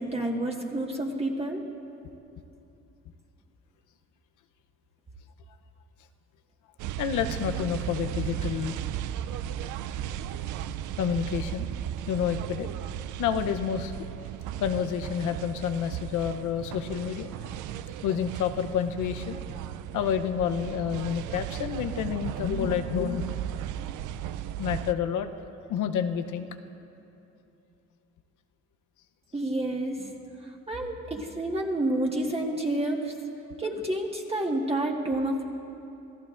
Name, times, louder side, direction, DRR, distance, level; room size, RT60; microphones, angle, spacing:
voice 1, 0.0-1.6 29.3-30.1 30.4-33.1 33.6-35.4, right 1 dB, 20° right, -1 dB, 1.6 m, -29 dB
sound 1, 6.8-24.9, right 11 dB, 85° right, 0.5 m, -35 dB
voice 2, 7.0-8.8 11.0-11.7 12.1-12.7 13.2-13.9 14.6-19.4 19.9-23.3 24.6-25.3 25.7-26.5, left 8 dB, 90° left, 8 dB, 0.8 m, -29 dB
26.5 x 16.5 x 2.5 m, 2.8 s
cardioid pair, 90°, 30 cm